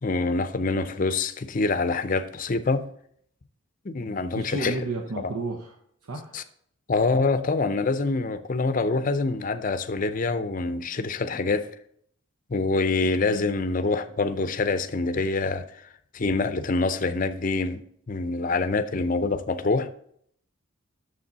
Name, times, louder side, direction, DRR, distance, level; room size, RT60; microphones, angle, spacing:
voice 1, 0.0-2.9 3.8-4.7 6.3-6.4 6.9-11.7 12.5-15.8 16.1-17.8 18.1-19.9, left 3 dB, 40° left, 0.5 m, -25 dB
voice 2, 4.3-5.8 6.0-6.4, right 2 dB, 85° right, 0.9 m, -32 dB
8.7 x 7.0 x 4.0 m
head